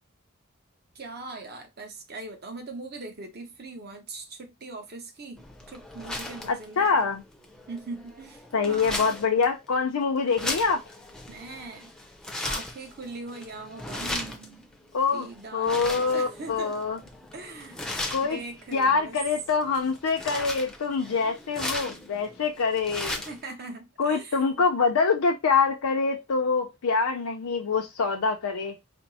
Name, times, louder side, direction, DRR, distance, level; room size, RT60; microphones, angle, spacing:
voice 1, 0.9-7.1 7.7-9.1 11.3-11.9 12.4-14.7 15.1-16.8 17.3-17.8 18.3-19.2 21.0-21.2 23.2-24.7, right 3 dB, 45° right, 0.9 m, -41 dB
sound 1, 5.4-23.5, left 1 dB, 5° left, 0.5 m, -37 dB
voice 2, 6.5-7.2 8.5-10.8 14.9-17.0 18.1-18.4 18.7-23.2 24.0-28.7, left 5 dB, 90° left, 0.5 m, -25 dB
4.3 x 2.0 x 4.1 m
head